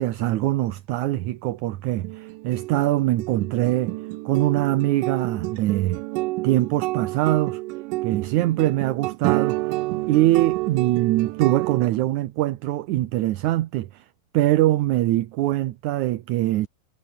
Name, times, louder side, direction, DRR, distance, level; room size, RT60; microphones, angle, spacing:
voice 1, 0.0-3.9 4.3-6.0 6.4-7.6 8.0-9.6 10.1-14.1 14.3-16.7, right 15 dB, 75° right, 2.2 m, -23 dB
sound 1, 2.0-11.9, right 20 dB, 90° right, 2.2 m, -29 dB
omnidirectional pair, 3.7 m